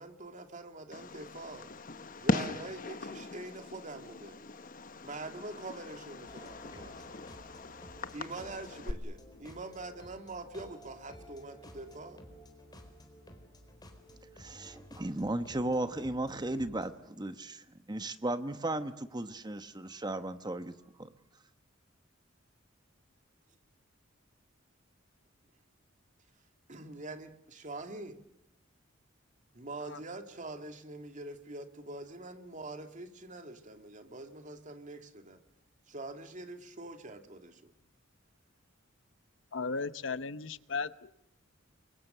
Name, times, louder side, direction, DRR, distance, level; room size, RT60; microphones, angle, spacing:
voice 1, 0.0-1.7 2.2-4.4 5.0-7.2 8.1-12.2 26.7-28.2 29.5-35.4 35.9-37.7, right 2 dB, 40° right, 7 dB, 2.3 m, -44 dB
Fireworks, 0.9-8.9, left 3 dB, 45° left, 1.1 m, -39 dB
sound 1, 6.3-16.9, equal, 20° left, 4.3 m, -53 dB
voice 2, 14.4-17.6 17.9-20.7 21.0-21.1, right 1 dB, 20° right, 10 dB, 1.1 m, -35 dB
voice 3, 39.5-41.1, left 4 dB, 70° left, 14 dB, 0.9 m, -36 dB
29.5 x 23.5 x 6.8 m, 0.84 s
head